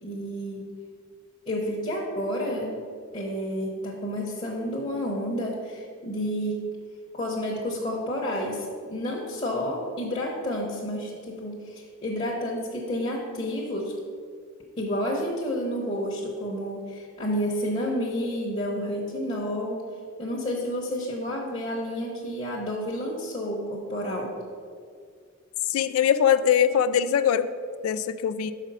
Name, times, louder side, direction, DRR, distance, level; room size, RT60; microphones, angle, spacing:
voice 1, 0.0-0.7 1.5-2.7 3.1-6.6 7.1-13.9 14.8-19.8 20.2-24.3, equal, 30° left, -4 dB, 0.8 m, -30 dB
voice 2, 25.7-27.5 27.8-28.5, left 8 dB, 90° left, 12 dB, 0.3 m, -22 dB
6.2 x 5.1 x 5.4 m, 2.1 s
head